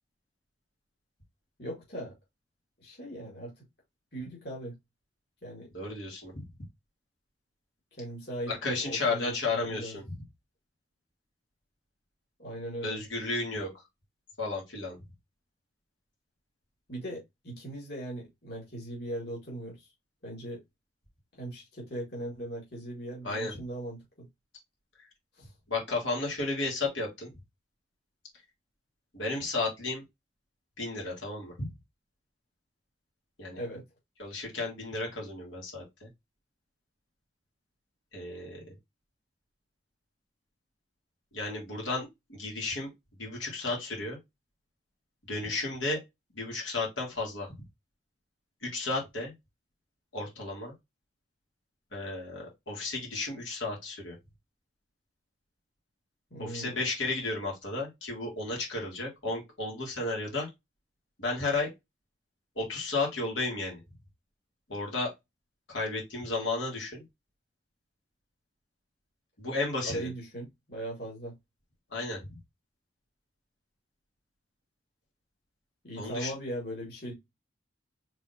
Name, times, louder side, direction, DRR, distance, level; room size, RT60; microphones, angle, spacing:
voice 1, 1.6-2.1 2.8-3.6 4.1-4.8 5.4-5.7 8.0-10.0 12.4-13.0 16.9-19.9 20.2-20.6 21.3-24.3 25.3-25.5 33.5-33.8 56.3-56.8 69.8-71.3 75.8-77.1, right 1 dB, 60° left, 2.3 m, -39 dB
voice 2, 5.7-6.4 8.5-10.2 12.8-13.7 14.4-15.0 23.2-23.5 25.7-27.3 29.1-30.0 30.8-31.7 33.4-33.6 34.2-36.1 38.1-38.6 41.3-42.9 43.2-44.2 45.3-46.0 46.3-47.5 48.6-49.3 50.1-50.7 51.9-54.2 56.4-60.5 61.2-61.7 62.5-63.8 64.7-65.1 65.7-67.0 69.4-70.1 71.9-72.4 76.0-76.3, left 3 dB, 85° left, 2.9 m, -33 dB
4.5 x 3.9 x 2.8 m
head